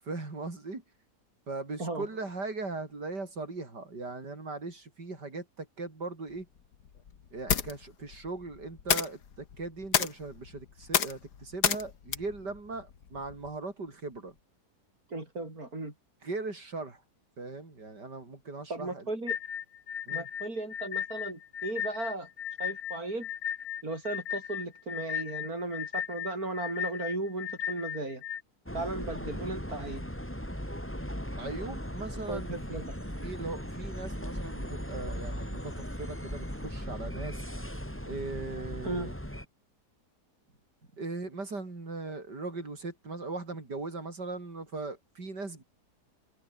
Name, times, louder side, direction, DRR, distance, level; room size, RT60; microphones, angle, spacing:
voice 1, 0.0-0.8 1.5-6.5 7.3-14.3 16.2-17.0 17.4-19.0 20.1-20.3 31.4-32.6 33.2-37.5 38.0-39.1 41.0-45.6, right 3 dB, 90° right, 5.3 m, -39 dB
sound 1, 6.3-13.6, left 7 dB, 75° left, 2.1 m, -32 dB
voice 2, 15.1-15.9 18.7-19.4 20.1-22.3 22.6-23.3 23.8-28.2 28.7-30.0 32.3-33.0 38.8-39.1, right 2 dB, 60° right, 7.1 m, -36 dB
sound 2, 19.3-28.4, left 9 dB, 60° left, 1.3 m, -36 dB
sound 3, 28.7-39.4, equal, 5° left, 6.9 m, -38 dB
open air
omnidirectional pair, 1.8 m